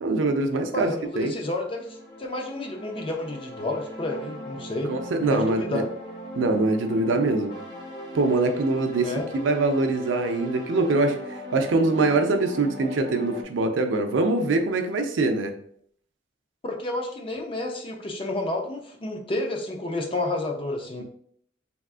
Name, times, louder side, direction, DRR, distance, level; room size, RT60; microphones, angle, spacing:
voice 1, 0.0-1.3 4.9-5.8 6.4-7.5 8.1-15.5, right 2 dB, 90° right, 6 dB, 0.4 m, -23 dB
voice 2, 0.7-1.9 2.2-5.9 9.0-9.3 16.7-21.0, left 2 dB, 30° left, 2 dB, 0.4 m, -30 dB
sound 1, 1.8-13.4, equal, 55° left, 1.1 m, -39 dB
3.5 x 2.3 x 2.4 m, 0.62 s
head